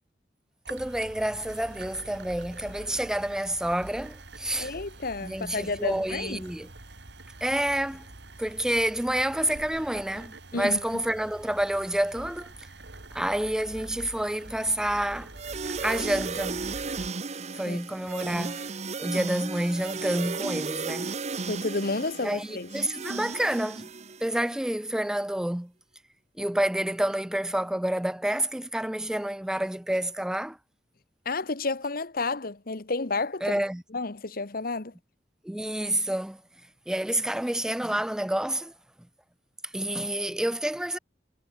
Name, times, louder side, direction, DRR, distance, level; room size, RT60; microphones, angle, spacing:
voice 1, 0.7-4.7 5.2-6.7 7.4-8.0 8.4-12.5 13.1-15.3 15.8-16.6 17.5-18.6 19.0-21.1 22.2-23.9 24.2-25.7 26.4-30.6 33.4-33.8 35.4-36.4 36.9-38.7 39.7-41.0, right 1 dB, 5° right, 0.3 m, -28 dB
sound 1, 0.7-17.1, right 2 dB, 85° right, 3.3 m, -45 dB
voice 2, 4.6-6.4 10.5-10.8 17.7-17.8 21.4-22.7 31.2-33.6 33.9-34.9, left 3 dB, 55° left, 1.2 m, -31 dB
sound 2, 15.4-24.5, right 4 dB, 40° right, 0.9 m, -35 dB
head